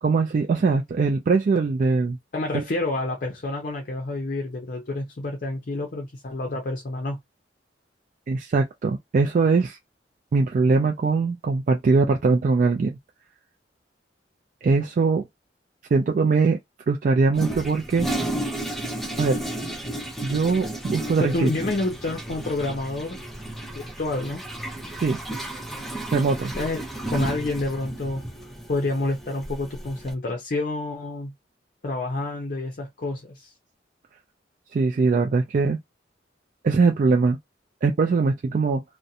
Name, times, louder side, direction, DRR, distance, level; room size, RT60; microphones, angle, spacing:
voice 1, 0.0-2.2 2.5-2.6 8.3-9.8 10.3-13.0 14.6-15.3 15.9-16.6 16.9-18.1 19.2-19.4 20.2-21.5 25.0-25.2 26.1-26.5 34.7-35.8 36.6-37.4 37.8-38.8, right 4 dB, 45° right, 0.3 m, -21 dB
voice 2, 2.3-7.2 21.2-23.2 23.8-24.4 26.6-26.8 27.1-28.2 28.7-31.3 31.8-33.5, left 2 dB, 50° left, 0.6 m, -28 dB
Toilet flush, 17.3-30.1, right 1 dB, ahead, 0.6 m, -33 dB
2.5 x 2.1 x 2.7 m
head